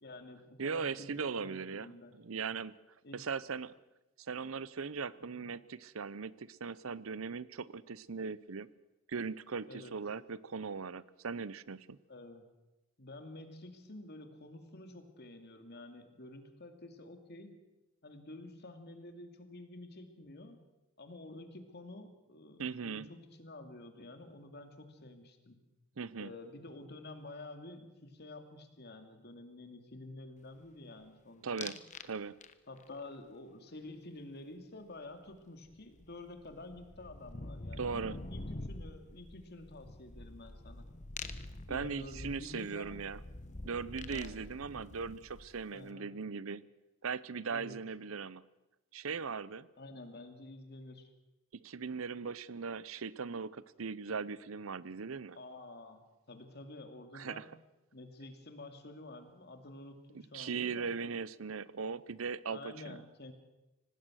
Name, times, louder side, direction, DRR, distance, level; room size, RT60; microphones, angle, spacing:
voice 1, 0.0-2.1 3.0-3.2 5.3-5.4 9.7-9.9 12.1-12.5 13.0-17.5 18.0-20.6 21.0-25.6 26.2-31.8 32.7-40.9 41.7-43.0 44.1-44.4 45.7-46.2 47.5-47.8 49.8-51.1 55.4-57.5 57.9-60.9 62.5-63.3, left 2 dB, 55° left, 7 dB, 2.6 m, -49 dB
voice 2, 0.6-2.8 3.1-3.7 4.2-8.7 9.1-12.0 22.6-23.1 26.0-26.3 31.4-31.8 32.1-32.4 37.8-38.2 41.7-43.2 43.6-46.6 47.0-48.4 48.9-49.7 51.6-55.4 57.1-57.4 60.3-63.0, right 5 dB, 85° right, 19 dB, 0.7 m, -39 dB
sound 1, 31.6-32.1 32.4-32.9 35.3-35.4 35.6-45.7, left 2 dB, 35° left, 1.2 m, -46 dB
25.0 x 18.5 x 6.4 m, 1.0 s
head